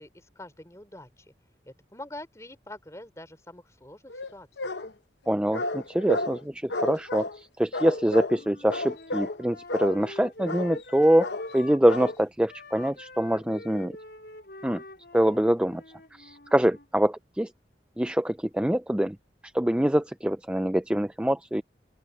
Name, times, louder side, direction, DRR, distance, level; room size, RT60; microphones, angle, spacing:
voice 1, 0.0-1.3 1.7-4.7, left 1 dB, 15° left, 3.9 m, -45 dB
sound 1, 4.1-4.9 5.5-6.4 6.7-7.4 7.7-8.4 8.7-9.4 9.7-10.0 10.5-10.8 11.2-11.6 11.9-12.2, left 2 dB, 85° left, 1.0 m, -32 dB
voice 2, 5.3-11.3 11.5-13.9 14.6-14.8 15.1-15.8 16.1-17.5 18.0-19.2 19.5-21.6, right 1 dB, 5° right, 0.4 m, -24 dB
sound 2, 8.3-12.2 12.5-16.8, left 2 dB, 65° left, 5.5 m, -45 dB
open air
head